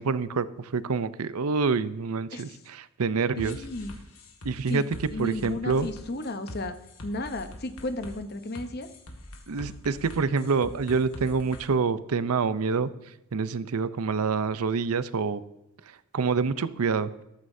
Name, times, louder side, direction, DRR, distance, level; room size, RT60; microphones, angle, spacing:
voice 1, 0.0-3.6 4.4-4.8 5.2-5.9 9.5-12.9 13.3-15.4 16.1-17.1, right 5 dB, 80° right, 15 dB, 0.6 m, -27 dB
sound 1, 3.4-11.6, left 1 dB, 75° left, 1.7 m, -44 dB
voice 2, 3.4-3.9 4.7-6.7 7.0-8.9, left 2 dB, 45° left, 9 dB, 0.8 m, -34 dB
14.0 x 12.5 x 2.7 m, 0.91 s
head